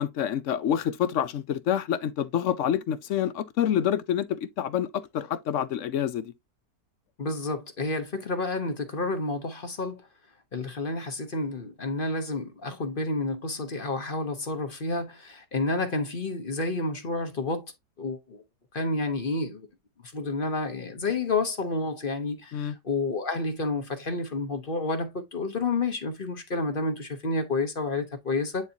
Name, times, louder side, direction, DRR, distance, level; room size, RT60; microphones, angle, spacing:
voice 1, 0.0-6.3 22.5-22.7, left 9 dB, 65° left, 0.8 m, -27 dB
voice 2, 7.2-10.1 10.5-18.4 18.7-19.6 20.0-28.7, left 3 dB, 40° left, 1.0 m, -30 dB
9.7 x 4.0 x 2.8 m
omnidirectional pair, 1.8 m